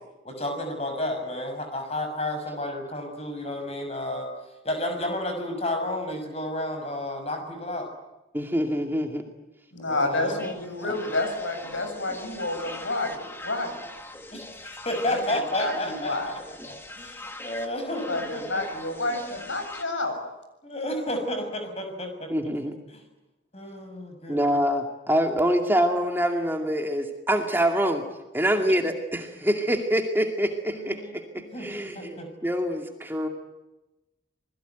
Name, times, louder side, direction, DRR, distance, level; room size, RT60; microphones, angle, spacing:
voice 1, 0.2-4.3 4.6-7.9 9.8-10.4 10.8-11.0 14.3-16.6 17.0-18.6 20.6-22.3 22.9-23.0 23.5-24.6 30.7-32.3, left 1 dB, 30° left, 5 dB, 6.3 m, -32 dB
voice 2, 8.3-9.2 22.3-22.7 24.3-28.0 28.3-33.3, equal, 10° right, 3 dB, 2.3 m, -25 dB
voice 3, 9.7-13.8 15.0-16.3 18.1-20.2, left 2 dB, 80° left, 6 dB, 7.5 m, -29 dB
sound 1, 10.3-19.8, left 1 dB, 10° left, 2.1 m, -42 dB
27.5 x 21.0 x 9.3 m, 1.0 s
head